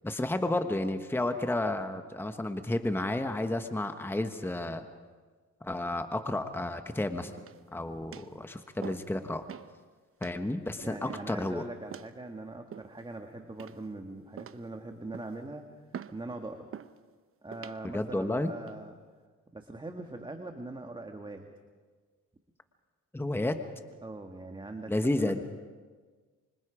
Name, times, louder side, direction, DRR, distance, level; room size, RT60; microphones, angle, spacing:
voice 1, 0.0-4.9 5.6-7.3 7.7-9.4 10.2-11.6 17.9-18.5 23.1-23.6 24.9-25.4, left 1 dB, 5° left, 7 dB, 1.3 m, -31 dB
sound 1, 7.4-7.7 8.1-8.4 8.8-9.1 9.5-9.7 10.2-10.4 11.1-11.4 11.9-12.1 12.7-13.1 13.6-14.0 14.4-14.7 15.1-15.4 15.9-16.2 16.7-17.0 17.5-17.8 18.4-18.7, right 8 dB, 45° right, 0.9 m, -45 dB
voice 2, 10.8-15.6 16.1-16.7 17.4-18.9 19.5-21.5 24.0-25.4, right 2 dB, 15° right, 4 dB, 1.7 m, -42 dB
25.5 x 25.0 x 5.1 m, 1.4 s
cardioid pair, 90°, 30 cm